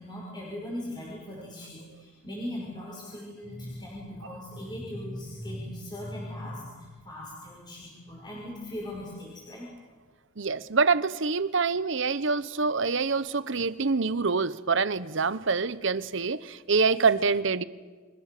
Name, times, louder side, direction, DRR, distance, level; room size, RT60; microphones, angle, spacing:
voice 1, 0.0-9.7, left 1 dB, 20° left, -3 dB, 5.6 m, -39 dB
voice 2, 10.4-17.6, right 4 dB, 60° right, 15 dB, 0.9 m, -26 dB
29.5 x 25.0 x 6.8 m, 1.4 s
head